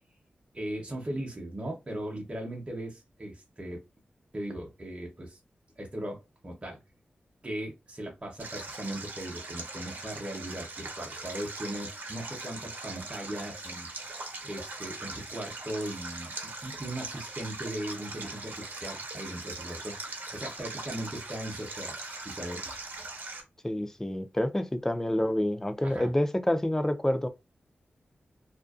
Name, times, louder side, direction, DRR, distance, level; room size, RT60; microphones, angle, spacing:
voice 1, 0.5-3.8 4.3-5.4 5.8-6.8 7.4-13.9 14.4-22.0 22.2-22.7 25.8-26.1, right 1 dB, 30° right, 0.9 m, -38 dB
Stream, 8.4-23.4, right 2 dB, 65° right, 0.9 m, -40 dB
voice 2, 23.6-27.3, left 1 dB, 15° left, 0.5 m, -28 dB
2.5 x 2.2 x 2.4 m
cardioid pair, 60°, 3 cm